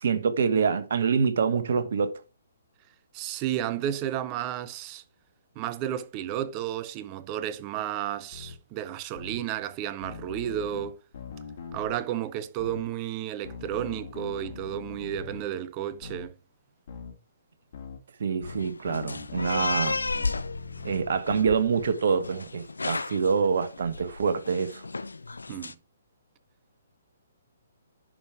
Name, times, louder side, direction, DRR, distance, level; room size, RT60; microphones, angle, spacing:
voice 1, 0.0-2.2 18.2-20.0 20.8-24.8, right 6 dB, 55° right, 1.3 m, -26 dB
voice 2, 3.1-5.0 5.6-11.0 11.7-16.3 25.5-25.7, right 11 dB, 30° right, 0.8 m, -32 dB
sound 1, 8.3-8.6 9.2-9.4 10.0-12.0 12.6-12.8 13.4-15.4 16.0-16.3 16.9-17.1 17.7-18.0 18.4-21.2, left 5 dB, 50° left, 2.9 m, -41 dB
sound 2, 18.5-25.7, left 3 dB, 75° left, 0.6 m, -34 dB
10.5 x 5.2 x 4.8 m
figure-of-eight pair, 130°, 0 cm